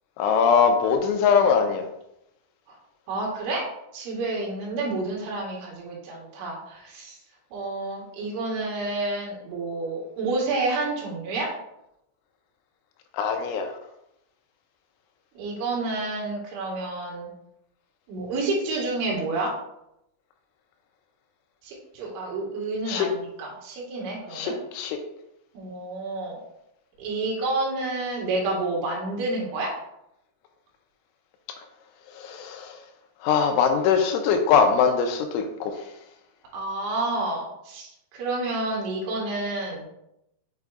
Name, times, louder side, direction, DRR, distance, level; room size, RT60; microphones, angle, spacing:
voice 1, 0.2-1.8 13.1-13.7 22.9-23.1 24.3-25.0 32.1-32.8 33.2-35.8, left 6 dB, 80° left, 5 dB, 3.0 m, -22 dB
voice 2, 3.1-3.6 3.9-7.2 7.5-11.5 15.4-17.3 18.1-19.5 21.6-24.5 25.5-26.4 27.0-29.7 36.5-39.9, right 2 dB, 75° right, -3 dB, 3.9 m, -29 dB
6.7 x 6.5 x 2.4 m, 0.82 s
omnidirectional pair, 5.6 m